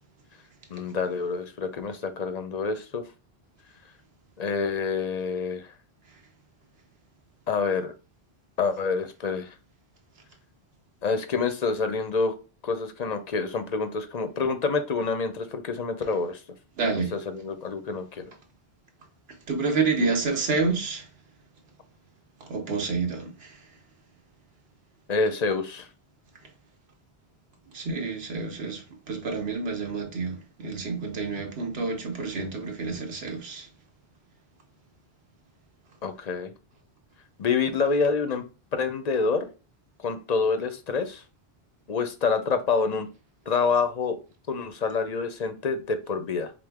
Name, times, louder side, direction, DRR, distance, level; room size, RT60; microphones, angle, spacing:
voice 1, 0.7-3.0 4.4-5.7 7.5-7.9 8.6-9.5 11.0-12.4 12.6-16.4 17.1-18.2 20.0-20.2 25.1-25.9 36.0-36.5 37.4-38.4 38.7-39.5 40.0-41.2 41.9-43.1 43.5-44.2 44.5-46.5, left 4 dB, 50° left, 0.5 m, -27 dB
voice 2, 16.8-17.2 19.5-21.1 22.4-23.6 27.7-33.7, right 4 dB, 70° right, 1.2 m, -29 dB
4.9 x 2.0 x 3.4 m
omnidirectional pair, 1.1 m